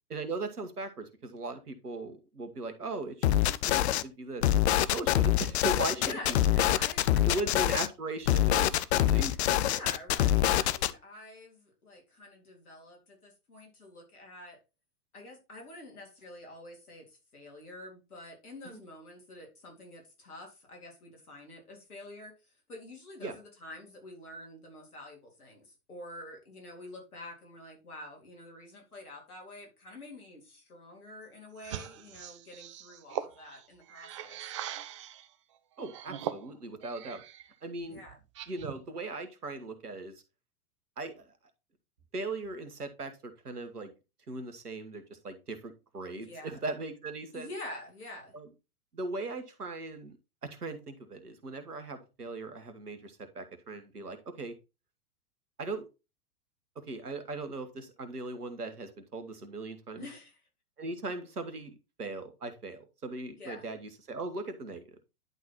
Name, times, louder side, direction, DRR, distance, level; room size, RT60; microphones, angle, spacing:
voice 1, 0.1-4.5 4.9-6.4 7.3-9.4 23.2-23.3 35.8-37.2 37.6-38.0 38.5-40.2 41.0-41.3 42.1-43.9 44.3-47.5 48.3-48.5 48.9-54.5 55.6-55.9 56.7-60.1 60.8-65.0, right 2 dB, 85° right, 9 dB, 1.5 m, -39 dB
sound 1, 3.2-4.0 4.4-7.9 8.3-10.9, left 12 dB, 45° left, 0.6 m, -25 dB
voice 2, 6.0-7.4 9.6-14.6 15.1-34.4 37.9-38.2 46.2-46.6 47.3-48.4 60.0-60.4 63.4-63.7, left 2 dB, 70° left, 1 dB, 3.8 m, -47 dB
sound 2, 31.6-35.3 35.8-37.5 37.8-38.9, right 11 dB, 25° right, 0.3 m, -41 dB
10.5 x 4.1 x 4.1 m, 0.28 s
figure-of-eight pair, 100°, 45 cm